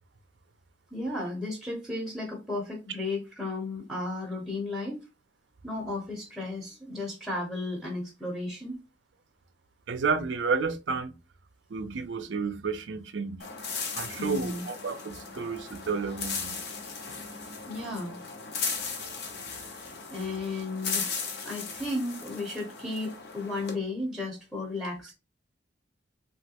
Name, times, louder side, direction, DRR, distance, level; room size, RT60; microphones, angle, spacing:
voice 1, 0.9-5.0 5.6-8.8 14.2-14.6 17.7-18.2 19.5-19.8 20.1-21.1 21.4-25.1, left 2 dB, ahead, 0.7 m, -34 dB
voice 2, 9.9-11.1 11.7-13.4 14.0-16.6, right 5 dB, 70° right, 0.5 m, -31 dB
sound 1, 13.4-23.7, left 5 dB, 60° left, 0.7 m, -37 dB
3.1 x 2.4 x 2.8 m
head